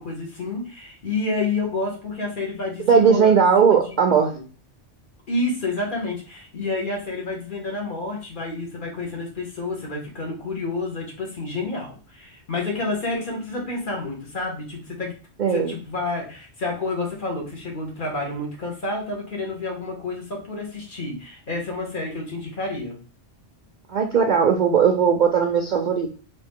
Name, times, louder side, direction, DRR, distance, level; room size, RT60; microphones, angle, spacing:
voice 1, 0.0-3.3 3.6-4.0 4.3-4.4 5.3-15.1 15.5-23.0, left 3 dB, 50° left, -1 dB, 1.3 m, -29 dB
voice 2, 2.9-4.3 15.4-15.7 23.9-26.1, right 6 dB, 60° right, 3 dB, 0.5 m, -18 dB
3.2 x 2.8 x 3.5 m, 0.38 s
omnidirectional pair, 1.2 m